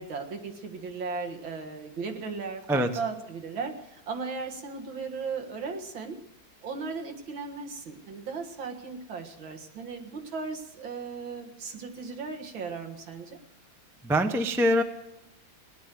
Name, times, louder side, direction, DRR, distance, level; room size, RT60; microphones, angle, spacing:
voice 1, 0.0-6.2 6.6-13.4, right 4 dB, 75° right, 2 dB, 2.5 m, -36 dB
voice 2, 14.0-14.8, equal, 5° right, 6 dB, 0.3 m, -23 dB
17.5 x 10.5 x 7.5 m, 0.90 s
omnidirectional pair, 2.1 m